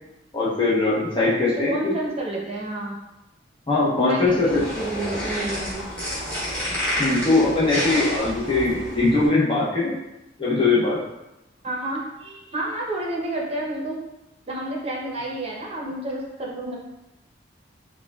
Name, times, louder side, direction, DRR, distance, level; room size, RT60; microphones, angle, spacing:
voice 1, 0.3-2.0 3.7-4.5 7.0-10.0 10.4-11.0, left 3 dB, 30° left, -7 dB, 0.8 m, -21 dB
voice 2, 1.5-3.0 3.9-5.9 11.6-14.0 14.5-16.7, right 1 dB, 35° right, -3 dB, 0.7 m, -30 dB
sound 1, 4.3-9.3, equal, 10° left, 1.3 m, -29 dB
4.8 x 2.2 x 2.3 m, 0.95 s
head